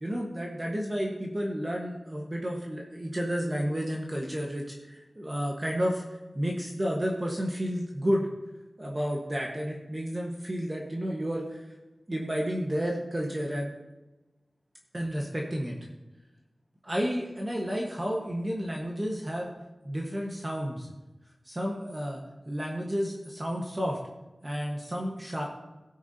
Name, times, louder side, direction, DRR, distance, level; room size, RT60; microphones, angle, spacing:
voice 1, 0.0-6.0 6.3-8.3 8.8-11.6 12.1-13.7 14.9-15.8 16.8-19.5 19.8-20.9 21.4-22.2 22.5-24.0 24.4-25.5, equal, 25° right, -1 dB, 1.4 m, -31 dB
17.0 x 8.3 x 2.8 m, 1.1 s
wide cardioid pair, 90°, 0 cm